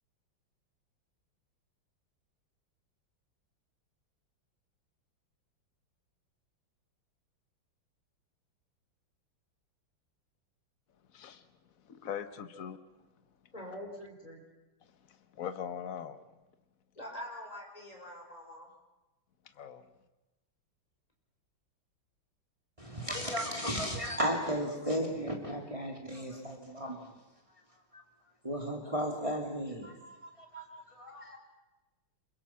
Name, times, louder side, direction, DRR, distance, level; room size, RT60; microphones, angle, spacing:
voice 1, 11.1-11.4 11.9-12.8 15.1-16.2 19.6-19.8, left 8 dB, 45° left, 10 dB, 1.5 m, -41 dB
voice 2, 13.5-14.4 17.0-18.7, left 1 dB, 20° left, 0 dB, 5.2 m, -44 dB
voice 3, 22.8-27.1 28.4-31.4, equal, 15° right, 1 dB, 2.6 m, -35 dB
26.5 x 22.5 x 5.8 m, 1.1 s
omnidirectional pair, 2.2 m